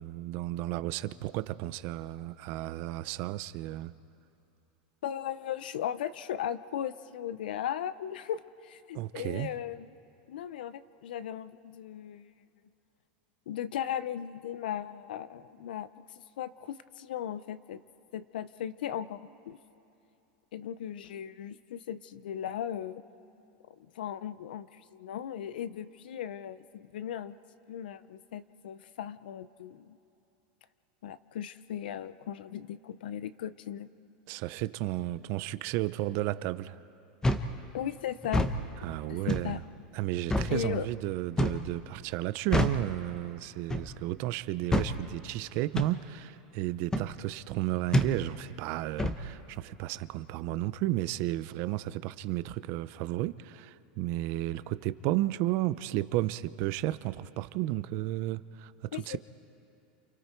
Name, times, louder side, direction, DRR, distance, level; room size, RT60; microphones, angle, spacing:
voice 1, 0.0-3.9 8.9-9.5 34.3-36.8 38.8-39.6 39.9-59.2, right 16 dB, 55° right, 0.7 m, -33 dB
voice 2, 5.0-9.9 10.3-12.3 13.5-15.9 16.4-17.8 18.1-19.2 19.5-19.6 20.5-23.0 23.8-27.3 27.7-30.0 31.0-33.9 37.7-38.4 39.1-39.6 40.5-40.9 58.9-59.2, left 10 dB, 85° left, 0.7 m, -37 dB
sound 1, 37.2-37.5 38.2-38.6 39.3-39.5 40.3-40.5 41.4-41.7 42.5-42.8 43.7-43.9 44.7-44.9 45.7-45.9 46.9-47.1 47.9-48.1 49.0-49.2, left 1 dB, 15° left, 1.2 m, -27 dB
30.0 x 28.5 x 4.6 m
supercardioid pair, 125°, 5 cm